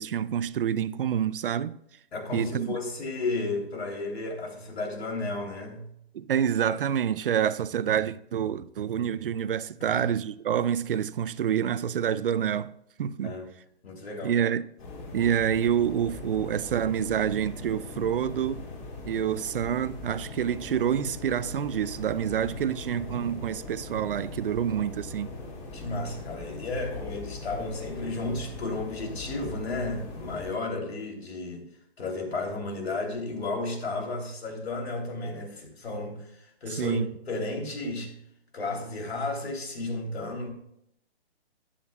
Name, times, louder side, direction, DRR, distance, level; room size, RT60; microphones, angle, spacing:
voice 1, 0.0-1.8 2.3-2.8 6.1-12.7 13.0-13.3 14.2-14.7 15.1-18.6 19.1-25.3 36.8-37.1, right 9 dB, 60° right, 0.6 m, -27 dB
voice 2, 2.1-5.9 9.8-10.1 13.2-13.5 13.8-14.4 25.7-31.7 32.0-38.1 38.5-40.5, left 2 dB, 85° left, 3.5 m, -33 dB
sound 1, 14.8-30.5, left 3 dB, 25° left, 3.6 m, -40 dB
14.5 x 10.0 x 2.4 m
hypercardioid pair, 155°, 31 cm